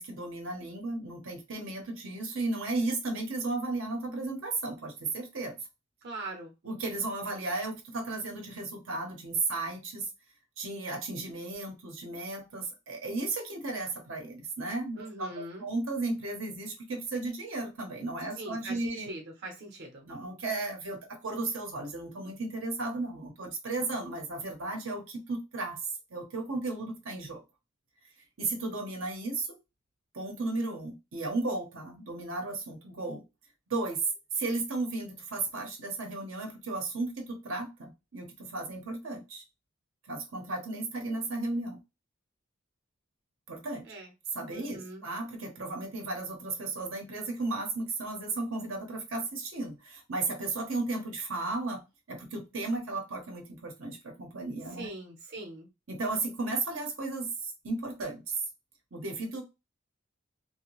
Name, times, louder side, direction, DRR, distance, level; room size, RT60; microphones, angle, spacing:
voice 1, 0.0-5.6 6.6-10.1 10.6-15.3 15.6-19.1 20.0-25.8 26.1-27.4 28.4-29.6 30.1-33.2 33.7-34.0 34.3-39.4 40.1-41.8 43.5-43.9 44.3-51.8 52.1-54.9 55.9-58.4 58.9-59.4, right 3 dB, 85° right, 0.8 m, -34 dB
voice 2, 6.0-6.5 15.0-15.6 18.4-20.1 43.9-44.1 44.5-45.0 54.8-55.7, right 2 dB, 55° right, 0.8 m, -41 dB
2.6 x 2.2 x 2.9 m
head